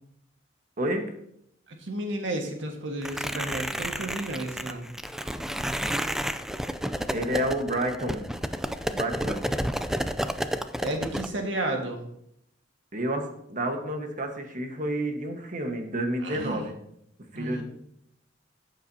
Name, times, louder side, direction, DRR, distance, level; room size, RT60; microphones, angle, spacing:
voice 1, 0.8-1.1 7.1-8.3 8.9-9.5 12.9-16.8 17.3-17.6, right 1 dB, 45° right, 4 dB, 1.3 m, -30 dB
voice 2, 1.7-4.8 10.8-12.0 16.2-16.6 17.3-17.6, right 1 dB, 90° right, 3 dB, 1.6 m, -32 dB
sound 1, 3.0-11.3, equal, 5° right, 0.4 m, -31 dB
14.0 x 7.6 x 2.8 m, 0.74 s
head